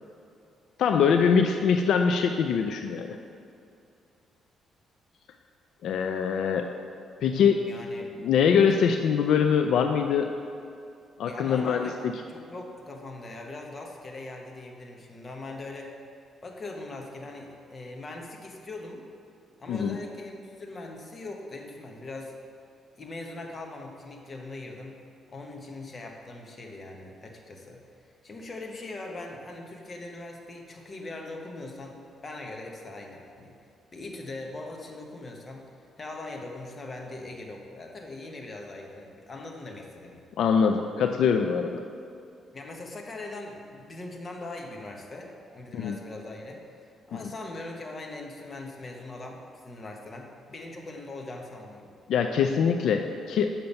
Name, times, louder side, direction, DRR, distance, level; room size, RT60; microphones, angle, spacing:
voice 1, 0.8-3.2 5.8-6.7 7.2-7.6 8.2-10.3 11.2-11.9 19.7-20.0 40.4-41.8 45.7-46.0 47.1-47.2 52.1-53.5, left 6 dB, 70° left, 5 dB, 0.4 m, -23 dB
voice 2, 7.6-8.1 11.2-15.9 16.4-19.1 19.6-22.3 23.0-25.0 25.3-27.8 28.2-33.6 33.9-35.7 36.0-40.2 42.5-51.9, left 2 dB, 30° left, 1 dB, 1.0 m, -41 dB
7.1 x 5.7 x 5.3 m, 2.5 s
cardioid pair, 140°, 0 cm